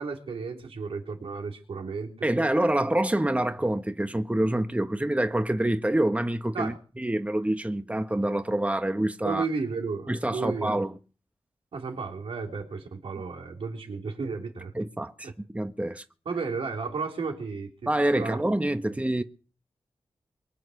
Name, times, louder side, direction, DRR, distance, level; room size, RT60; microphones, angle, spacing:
voice 1, 0.0-2.3 6.5-6.8 9.2-10.8 11.7-14.7 15.2-15.3 16.3-17.9 18.1-18.4, right 4 dB, 80° right, 3.6 m, -33 dB
voice 2, 2.2-9.5 10.1-10.9 14.7-16.0 17.9-19.2, right 1 dB, 15° right, 1.3 m, -26 dB
23.5 x 8.0 x 6.6 m
cardioid pair, 40°, 9 cm